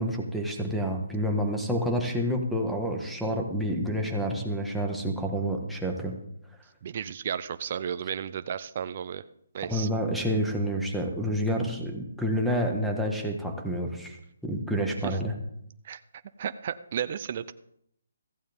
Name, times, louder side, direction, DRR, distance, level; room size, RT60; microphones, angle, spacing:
voice 1, 0.0-6.1 9.6-14.2 14.4-15.3, equal, ahead, -1 dB, 1.6 m, -28 dB
voice 2, 6.8-9.2 9.5-9.9 15.0-15.2 15.8-16.0 16.4-17.5, right 8 dB, 40° right, 11 dB, 0.5 m, -33 dB
15.5 x 15.0 x 3.6 m, 0.73 s
hypercardioid pair, 160°, 0 cm